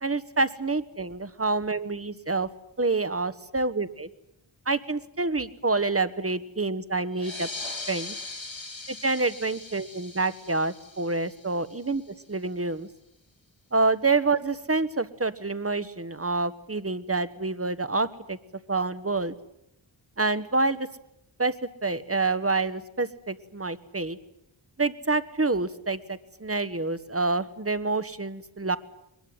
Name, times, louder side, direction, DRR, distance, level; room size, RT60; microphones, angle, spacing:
voice 1, 0.0-2.5 2.8-4.1 4.7-7.5 7.9-8.1 8.9-12.0 12.3-12.9 13.7-18.4 18.7-19.3 20.2-20.9 21.4-21.5 21.8-24.2 24.8-28.8, right 3 dB, 30° right, 13 dB, 1.4 m, -27 dB
sound 1, 7.1-12.2, left 3 dB, 75° left, 3.0 m, -40 dB
22.0 x 21.0 x 9.5 m, 0.79 s
wide cardioid pair, 40°, 46 cm